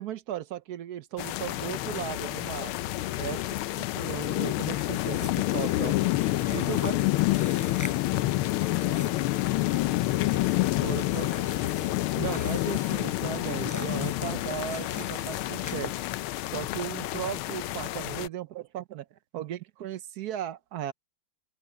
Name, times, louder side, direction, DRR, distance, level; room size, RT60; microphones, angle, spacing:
voice 1, 0.0-2.8 3.2-3.4 3.8-6.0 6.5-7.0 10.8-11.3 12.1-15.9 16.5-19.0 19.3-20.9, right 11 dB, 65° right, 1.1 m, -36 dB
sound 1, 1.2-18.3, left 17 dB, 90° left, 1.5 m, -28 dB
voice 2, 3.1-3.8 6.4-11.8, left 4 dB, 60° left, 3.9 m, -48 dB
sound 2, 4.6-16.3, equal, 10° left, 5.2 m, -46 dB
open air
omnidirectional pair, 2.3 m